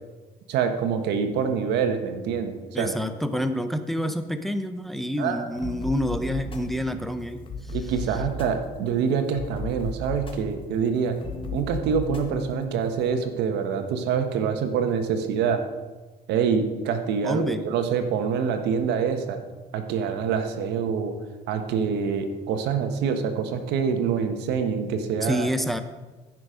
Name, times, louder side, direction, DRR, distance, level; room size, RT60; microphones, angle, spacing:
voice 1, 0.5-2.9 5.2-5.5 7.7-11.2 11.5-15.6 16.3-19.4 19.7-21.2 21.5-25.5, right 6 dB, 80° right, 7 dB, 1.3 m, -26 dB
voice 2, 2.7-7.8 17.2-17.7 25.2-25.8, equal, ahead, 8 dB, 0.7 m, -28 dB
sound 1, 5.6-13.1, left 3 dB, 30° left, 1.7 m, -36 dB
15.0 x 6.2 x 5.0 m, 1.2 s
cardioid pair, 110°, 17 cm